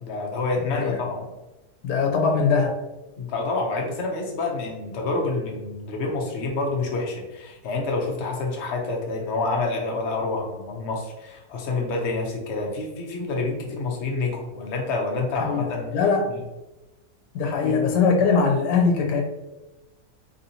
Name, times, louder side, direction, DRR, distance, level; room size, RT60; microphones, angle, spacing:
voice 1, 0.0-1.2 3.2-15.9 17.6-17.8, left 3 dB, 65° left, 0 dB, 0.7 m, -28 dB
voice 2, 1.8-2.8 15.4-16.3 17.3-19.2, left 5 dB, 85° left, 0 dB, 1.2 m, -21 dB
3.4 x 2.7 x 2.7 m, 1.0 s
omnidirectional pair, 1.8 m